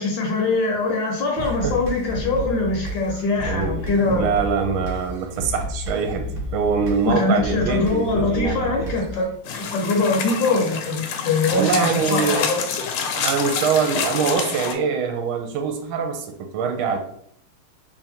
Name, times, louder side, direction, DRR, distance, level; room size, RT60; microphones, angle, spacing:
voice 1, 0.0-4.3 7.0-9.3 9.7-12.6, left 3 dB, 70° left, 0 dB, 1.3 m, -22 dB
sound 1, 1.4-9.4, left 1 dB, 45° right, 1.1 m, -31 dB
voice 2, 1.4-1.8 3.4-6.3 6.5-8.9 11.5-12.6 13.1-17.0, right 6 dB, 75° right, 4 dB, 1.4 m, -24 dB
sound 2, 9.5-14.7, left 6 dB, 85° left, 1.5 m, -27 dB
3.4 x 2.5 x 4.2 m, 0.68 s
omnidirectional pair, 2.4 m